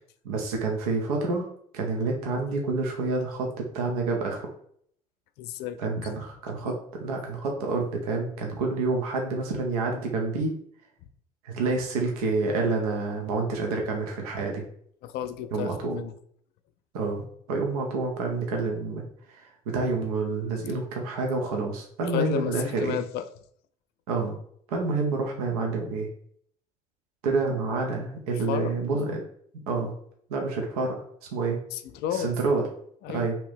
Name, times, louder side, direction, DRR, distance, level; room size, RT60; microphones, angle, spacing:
voice 1, 0.2-1.5 1.7-4.5 5.8-10.6 11.4-14.6 15.5-16.0 16.9-23.0 24.1-24.4 24.7-26.1 27.2-29.2 29.7-29.9 30.3-31.0 31.3-31.6 32.1-32.6 33.1-33.4, right 3 dB, 80° right, 1 dB, 0.6 m, -28 dB
voice 2, 5.4-6.0 6.6-6.7 15.0-16.1 22.0-23.3 28.3-28.8 31.7-32.3 33.0-33.3, left 10 dB, 60° left, 10 dB, 0.4 m, -32 dB
2.8 x 2.6 x 3.3 m, 0.64 s
hypercardioid pair, 55°, 19 cm